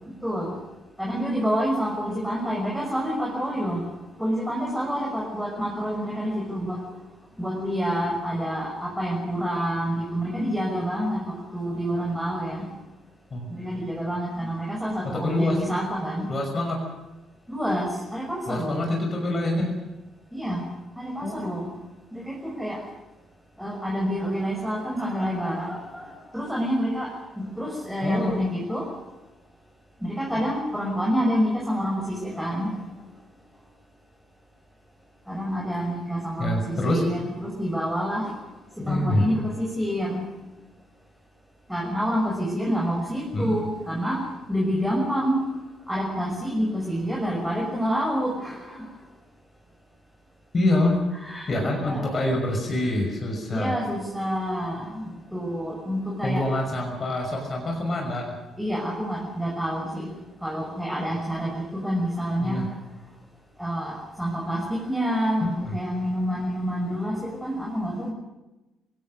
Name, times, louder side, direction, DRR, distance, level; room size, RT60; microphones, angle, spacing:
voice 1, 0.2-0.6 1.0-3.8 4.2-6.8 7.4-12.7 13.6-16.3 17.5-18.8 20.3-20.6 21.0-21.7 22.1-22.8 23.6-26.0 26.3-27.1 27.4-28.9 30.0-32.7 35.3-38.3 38.8-40.2 41.7-44.2 44.5-45.4 45.9-48.6 51.2-51.5 51.8-52.1 53.5-56.4 58.6-60.1 60.4-62.7 63.6-65.5 65.7-68.1, equal, ahead, -3 dB, 6.3 m, -28 dB
voice 2, 15.1-15.6 16.3-16.8 18.5-19.7 21.2-21.4 28.0-28.3 30.3-30.4 36.4-37.0 38.8-39.2 43.3-43.6 50.5-51.0 51.5-53.7 56.2-58.4 62.4-62.6 65.6-65.7, left 1 dB, 35° left, 1 dB, 6.0 m, -25 dB
27.5 x 17.5 x 6.6 m, 1.1 s
figure-of-eight pair, 45°, 0 cm